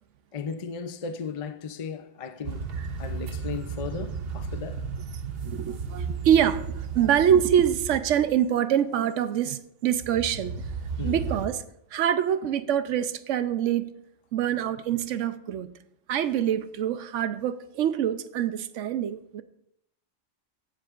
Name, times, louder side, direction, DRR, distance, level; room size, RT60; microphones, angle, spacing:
voice 1, 0.3-2.7 3.0-4.8 11.0-11.2, left 5 dB, 45° left, 0.4 m, -36 dB
sound 1, 2.4-8.4 9.9-11.5, right 4 dB, 55° right, 1.0 m, -34 dB
voice 2, 5.4-10.6 11.0-11.6 11.9-13.9 14.3-15.7 16.1-19.4, right 9 dB, 80° right, 1.0 m, -25 dB
16.5 x 7.4 x 2.4 m
omnidirectional pair, 1.3 m